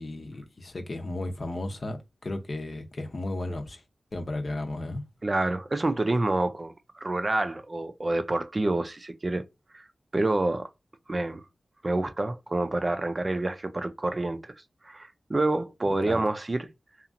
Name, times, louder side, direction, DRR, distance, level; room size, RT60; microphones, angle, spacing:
voice 1, 0.0-2.0 2.2-3.8 4.1-5.0 16.1-16.2, left 2 dB, 60° left, 0.6 m, -34 dB
voice 2, 5.2-9.5 9.7-9.9 10.1-10.7 11.1-11.4 11.8-14.5 14.8-16.7, right 2 dB, 40° right, 0.4 m, -28 dB
2.8 x 2.4 x 2.5 m
cardioid pair, 45°, 0 cm